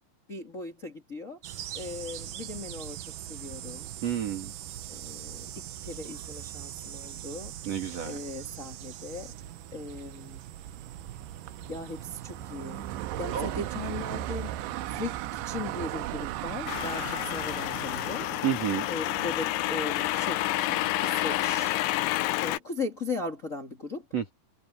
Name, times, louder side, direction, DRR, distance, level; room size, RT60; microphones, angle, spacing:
voice 1, 0.3-1.4 1.7-3.9 4.9-7.5 8.0-9.3 9.7-10.4 11.7-12.9 13.2-14.6 14.9-18.3 18.9-20.4 21.0-21.7 22.4-24.0, left 2 dB, 30° left, 1.5 m, -38 dB
sound 1, 1.4-18.2, right 11 dB, 70° right, 2.2 m, -42 dB
voice 2, 4.0-4.5 7.6-8.2 13.3-13.6 18.4-18.9 24.1-24.3, right 9 dB, 40° right, 3.1 m, -30 dB
sound 2, 10.4-21.9, right 14 dB, 90° right, 3.2 m, -38 dB
sound 3, 16.7-22.6, left 16 dB, 90° left, 3.2 m, -29 dB
omnidirectional pair, 5.0 m